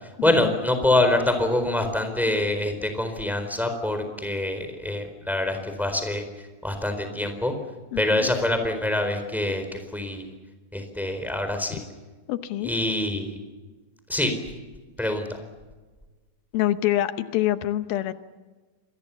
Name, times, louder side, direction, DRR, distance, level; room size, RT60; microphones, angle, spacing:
voice 1, 0.2-6.3 6.6-7.5 8.0-10.3 10.7-11.8 12.6-13.4 14.1-14.3 15.0-15.4, left 1 dB, ahead, 7 dB, 3.8 m, -25 dB
voice 2, 7.9-8.3 12.3-12.7 16.5-18.1, left 13 dB, 85° left, 10 dB, 2.8 m, -26 dB
28.5 x 23.0 x 7.1 m, 1.3 s
omnidirectional pair, 4.2 m